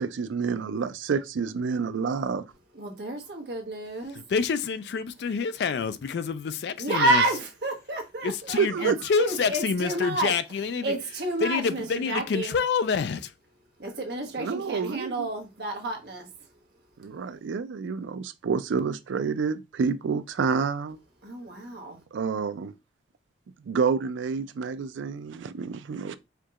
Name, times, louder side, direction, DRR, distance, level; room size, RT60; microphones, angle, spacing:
voice 1, 0.0-2.4 8.6-9.0 14.4-15.3 17.0-21.0 22.1-22.7 23.7-26.1, right 5 dB, 90° right, 0.4 m, -28 dB
voice 2, 2.7-4.2 6.8-10.3 10.8-12.5 13.8-16.3 21.2-22.0, right 2 dB, 60° right, 1.1 m, -29 dB
voice 3, 4.1-7.2 8.2-10.9 11.4-13.3, left 5 dB, 65° left, 0.3 m, -27 dB
4.5 x 2.8 x 2.4 m
head